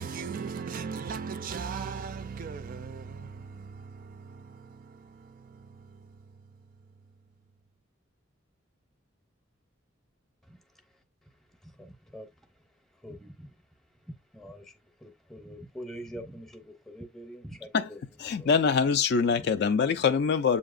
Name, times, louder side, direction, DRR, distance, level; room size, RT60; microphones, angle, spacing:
voice 1, 0.0-6.7, right 5 dB, 45° right, 0.3 m, -39 dB
voice 2, 10.4-18.5 19.3-19.5, equal, ahead, 0.7 m, -46 dB
voice 3, 18.2-20.6, left 5 dB, 55° left, 0.3 m, -24 dB
7.4 x 2.8 x 2.4 m
head